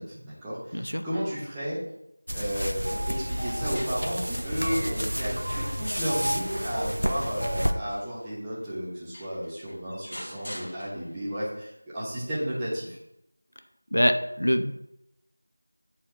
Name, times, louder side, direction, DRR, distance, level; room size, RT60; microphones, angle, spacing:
voice 1, 0.0-1.8 2.3-13.0, equal, 5° right, -10 dB, 0.7 m, -33 dB
voice 2, 0.7-1.0 13.9-14.7, equal, 85° left, 7 dB, 0.7 m, -24 dB
sound 1, 2.3-7.7, equal, 80° right, 0.6 m, -31 dB
sound 2, 2.8-8.0, equal, 55° right, 1.7 m, -37 dB
sound 3, 3.3-5.2 5.7-8.3 8.8-8.9 9.1-11.4, equal, 30° left, 1.7 m, -45 dB
9.4 x 4.2 x 2.7 m, 0.81 s
figure-of-eight pair, 175°, 0 cm